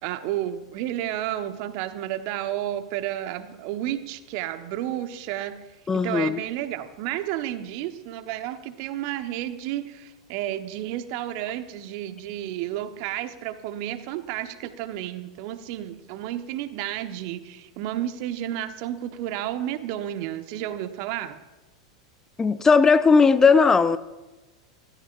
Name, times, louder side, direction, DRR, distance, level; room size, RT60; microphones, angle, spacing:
voice 1, 0.0-5.6 5.9-21.4, right 12 dB, 50° right, 1.2 m, -31 dB
voice 2, 5.9-6.4 22.4-24.0, left 5 dB, 15° left, 0.6 m, -17 dB
30.0 x 14.5 x 2.6 m
figure-of-eight pair, 90°, 3 cm